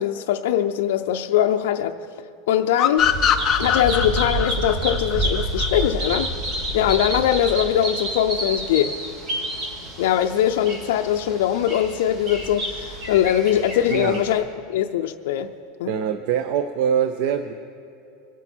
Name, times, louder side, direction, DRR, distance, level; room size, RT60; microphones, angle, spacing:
voice 1, 0.0-2.0 2.5-3.1 3.6-6.3 6.7-9.0 10.0-14.4 14.7-15.5 15.8-15.9, left 10 dB, 70° left, 4 dB, 0.5 m, -21 dB
sound 1, 2.8-6.1, left 9 dB, 20° left, 0.5 m, -22 dB
Bird vocalization bird call bird song, 3.0-14.4, right 1 dB, 30° right, 1.9 m, -29 dB
voice 2, 13.9-14.2 15.9-17.5, right 8 dB, 45° right, 9 dB, 0.5 m, -23 dB
23.5 x 8.2 x 4.5 m, 2.6 s
supercardioid pair, 180°, 0 cm